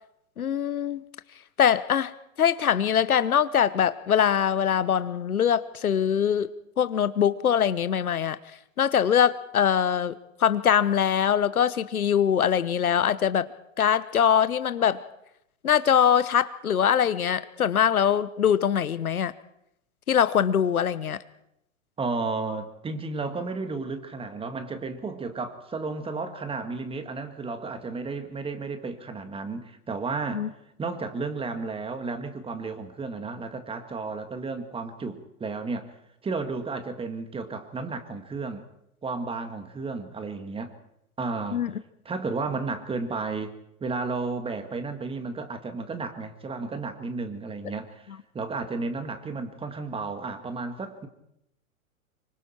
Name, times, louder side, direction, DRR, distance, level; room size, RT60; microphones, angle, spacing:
voice 1, 0.4-1.0 1.6-2.1 2.4-6.5 6.8-8.4 8.8-13.5 13.8-15.0 15.6-19.3 20.1-21.2 30.3-30.5 41.5-41.7, left 8 dB, 80° left, 15 dB, 1.0 m, -23 dB
voice 2, 22.0-30.5 30.8-35.9 36.2-38.6 39.0-40.7 41.2-41.6 42.1-51.1, right 4 dB, 15° right, 8 dB, 1.8 m, -33 dB
25.0 x 23.5 x 4.5 m, 0.81 s
figure-of-eight pair, 110°, 43 cm